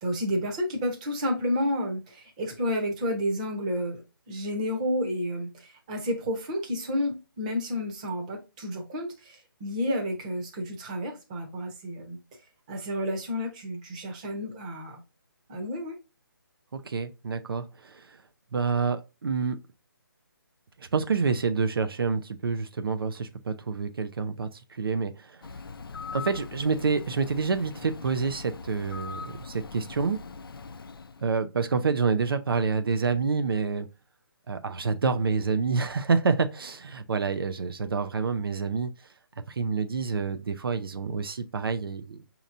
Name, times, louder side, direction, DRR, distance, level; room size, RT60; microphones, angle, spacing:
voice 1, 0.0-12.2 12.7-15.0 15.5-16.0, equal, 20° right, 0.8 m, -31 dB
voice 2, 16.7-18.2 18.5-19.6 20.8-25.4 26.1-30.2 31.2-33.9 34.5-38.9 39.5-42.2, right 5 dB, 80° right, 0.6 m, -28 dB
Bird, 25.4-31.2, left 5 dB, 75° left, 0.5 m, -41 dB
5.3 x 2.9 x 2.5 m
hypercardioid pair, 170°, 12 cm